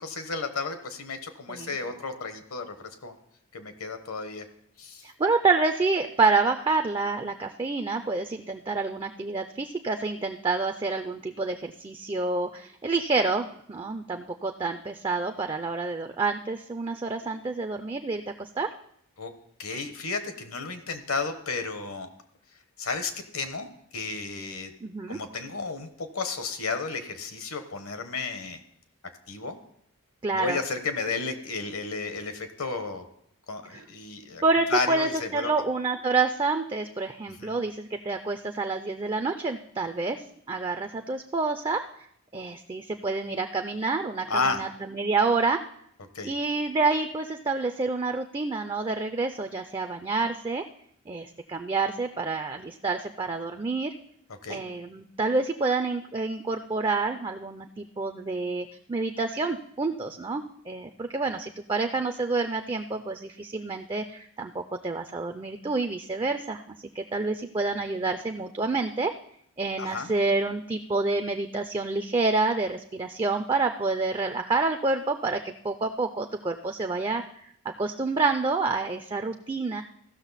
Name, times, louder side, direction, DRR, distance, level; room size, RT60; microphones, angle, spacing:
voice 1, 0.0-3.1 3.5-4.4 4.8-5.1 19.2-19.3 19.6-22.1 22.8-24.7 25.1-28.6 29.3-29.6 30.3-33.1 33.5-34.4 34.7-35.5 37.4-37.6 44.3-44.6 46.1-46.3 54.4-54.6 69.8-70.1, left 4 dB, 75° left, 8 dB, 1.1 m, -32 dB
voice 2, 5.0-18.7 24.8-25.2 30.2-30.6 33.7-33.8 34.4-41.9 42.3-45.6 46.2-50.7 51.1-53.9 54.5-69.1 69.6-77.5 77.8-79.8, right 3 dB, 20° right, 7 dB, 0.3 m, -28 dB
15.0 x 6.4 x 4.1 m, 0.69 s
head